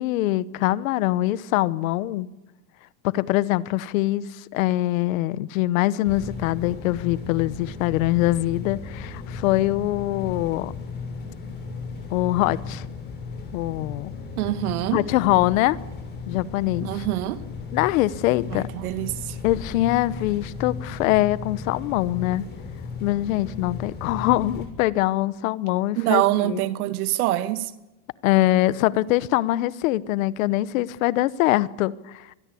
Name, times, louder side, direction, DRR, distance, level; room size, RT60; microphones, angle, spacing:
voice 1, 0.0-2.3 3.0-10.7 12.1-12.9 13.5-14.1 14.9-15.8 16.3-17.1 17.7-18.7 19.4-22.4 23.0-26.6 28.2-32.3, left 16 dB, 65° left, 1.1 m, -23 dB
sound 1, 6.0-24.7, left 4 dB, 25° left, 6.7 m, -36 dB
voice 2, 14.4-15.0 16.8-17.5 18.5-19.4 26.0-27.7, right 15 dB, 75° right, 1.8 m, -25 dB
26.0 x 21.0 x 8.5 m
supercardioid pair, 165°, 44 cm